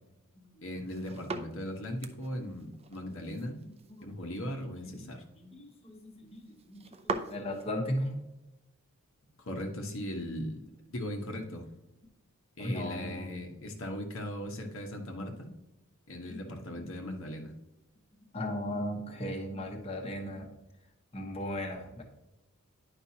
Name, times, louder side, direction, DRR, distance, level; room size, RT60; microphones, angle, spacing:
voice 1, 0.6-3.6 4.0-5.2 9.5-10.6 10.9-11.7 12.6-15.5 16.1-17.5, left 1 dB, 70° left, 2 dB, 1.2 m, -38 dB
sound 1, 0.7-7.7, right 3 dB, 30° right, 0.5 m, -43 dB
voice 2, 3.7-4.1 4.8-5.1 5.4-8.2 12.6-13.3 16.2-16.4 16.8-17.1 18.3-20.5 21.1-22.0, left 1 dB, 30° left, 0 dB, 1.2 m, -37 dB
10.0 x 5.3 x 2.8 m, 0.95 s
head